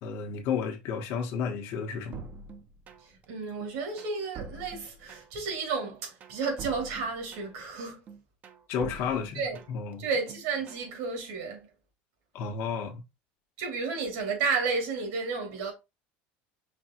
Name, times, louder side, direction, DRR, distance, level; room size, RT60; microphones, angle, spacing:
voice 1, 0.0-2.3 8.7-9.4 9.7-10.0 12.3-13.0, left 6 dB, 60° left, 1.1 m, -32 dB
sound 1, 2.1-3.3 3.6-5.5 5.8-7.7 8.1-9.9 10.3-10.9, right 5 dB, 30° right, 0.6 m, -45 dB
voice 2, 3.0-8.0 9.3-9.6 10.0-11.7 13.6-15.7, right 4 dB, 80° right, 2.5 m, -32 dB
5.2 x 3.3 x 2.9 m
cardioid pair, 140°, 5 cm